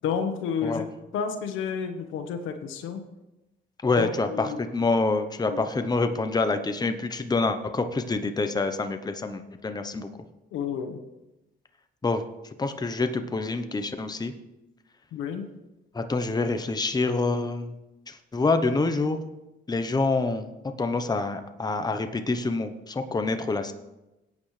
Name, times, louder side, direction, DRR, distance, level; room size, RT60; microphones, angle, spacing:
voice 1, 0.0-0.9 1.1-3.0 4.0-4.6 5.5-5.6 10.5-11.0 15.1-15.5, left 6 dB, 90° left, 6 dB, 1.3 m, -30 dB
voice 2, 3.8-10.1 12.0-12.2 12.6-14.3 15.9-17.7 18.1-19.2 19.7-20.5 20.8-23.7, left 3 dB, 20° left, 8 dB, 0.9 m, -26 dB
17.0 x 8.7 x 3.3 m, 0.97 s
cardioid pair, 90°, 20 cm